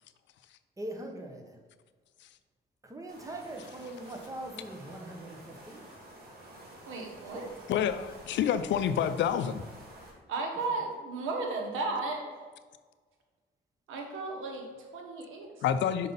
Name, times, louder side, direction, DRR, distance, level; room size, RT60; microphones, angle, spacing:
voice 1, 0.8-1.6 2.8-5.9 7.3-7.5, right 1 dB, 15° right, 3 dB, 1.1 m, -42 dB
sound 1, 3.1-10.1, right 1 dB, 50° right, 1.8 m, -50 dB
voice 2, 6.9-7.5 10.3-12.4 13.9-15.6, right 3 dB, 90° right, 1 dB, 1.3 m, -35 dB
voice 3, 7.7-9.6 15.6-16.1, left 9 dB, 70° left, 12 dB, 0.5 m, -28 dB
5.4 x 5.2 x 4.0 m, 1.4 s
cardioid pair, 90°, 20 cm